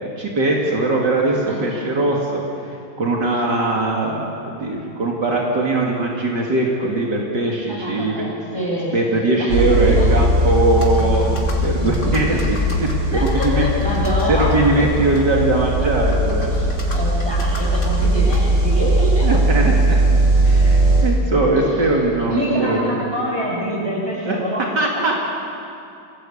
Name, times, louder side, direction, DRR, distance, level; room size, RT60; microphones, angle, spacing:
voice 1, 0.0-8.3 8.9-13.6 14.3-16.5 19.2-19.7 20.4-23.1 24.3-24.4 24.8-25.1, right 2 dB, 70° right, -2 dB, 2.9 m, -20 dB
voice 2, 7.7-10.1 11.8-12.4 13.1-14.9 16.5-19.3 22.3-25.1, right 1 dB, 15° right, -5 dB, 8.1 m, -26 dB
sound 1, 9.5-21.0, right 2 dB, 85° right, 7.3 m, -19 dB
Computer keyboard, 10.6-19.2, left 3 dB, 65° left, 3.4 m, -25 dB
26.0 x 17.0 x 8.6 m, 2.7 s
omnidirectional pair, 1.9 m